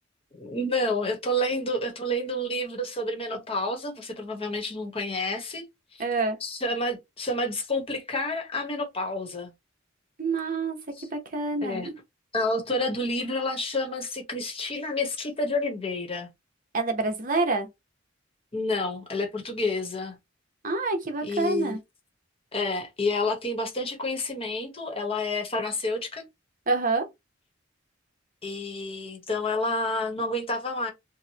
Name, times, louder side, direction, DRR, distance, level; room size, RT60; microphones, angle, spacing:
voice 1, 0.3-5.6 6.4-9.5 11.0-11.1 11.6-11.9 12.3-16.3 18.5-20.2 21.2-21.8 22.5-26.2 28.4-30.9, left 2 dB, 30° left, 1.0 m, -29 dB
voice 2, 6.0-6.4 10.2-12.0 16.7-17.7 20.6-21.8 26.7-27.0, right 3 dB, 45° right, 0.8 m, -27 dB
4.5 x 2.1 x 2.8 m
head